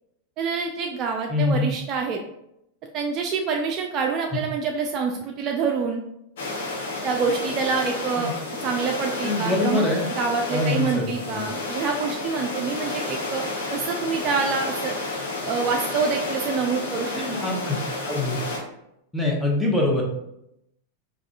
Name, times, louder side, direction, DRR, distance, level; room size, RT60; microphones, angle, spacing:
voice 1, 0.4-2.2 2.9-6.0 7.0-8.3 8.6-13.4 13.7-14.9 15.5-17.1, right 5 dB, 35° right, 2 dB, 0.3 m, -26 dB
voice 2, 1.3-1.7 8.2-8.3 9.2-10.1 10.5-11.4 17.1-17.8 18.1-18.4 19.1-20.0, left 2 dB, ahead, -2 dB, 0.8 m, -24 dB
sound 1, 6.4-18.6, left 2 dB, 60° left, 0.8 m, -31 dB
4.7 x 2.4 x 2.3 m, 0.81 s
figure-of-eight pair, 90°, 0 cm